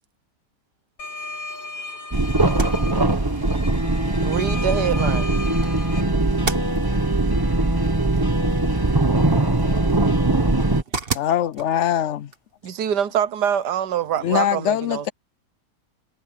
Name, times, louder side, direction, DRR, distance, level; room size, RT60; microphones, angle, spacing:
sound 1, 1.0-6.0, left 2 dB, 85° left, 7.3 m, -36 dB
sound 2, 2.1-10.8, right 2 dB, 15° right, 1.0 m, -21 dB
voice 1, 4.2-5.3 12.6-15.1, right 9 dB, 80° right, 1.5 m, -24 dB
sound 3, 9.6-14.1, right 4 dB, 35° right, 1.9 m, -37 dB
voice 2, 11.1-12.3 14.2-15.1, left 10 dB, 65° left, 0.7 m, -22 dB
voice 3, 14.0-14.5, left 1 dB, 35° left, 8.5 m, -52 dB
omnidirectional pair, 1.8 m